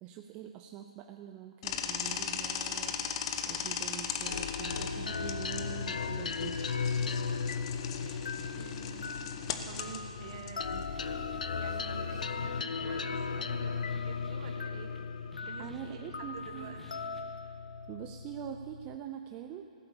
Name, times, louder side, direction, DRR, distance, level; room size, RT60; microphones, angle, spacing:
voice 1, 0.0-3.1 3.5-6.6 15.6-16.8 17.9-19.7, right 10 dB, 25° right, 5 dB, 0.5 m, -44 dB
sound 1, 1.6-12.0, left 8 dB, 45° left, 1.0 m, -39 dB
sound 2, 4.3-19.0, left 5 dB, 80° left, 0.7 m, -36 dB
sound 3, 4.9-17.2, left 1 dB, 5° left, 1.1 m, -57 dB
voice 2, 8.5-9.1 9.6-10.9 11.3-14.9 15.4-16.8, right 6 dB, 50° right, 4 dB, 1.7 m, -48 dB
16.0 x 8.7 x 7.0 m, 2.6 s
hypercardioid pair, 140°, 4 cm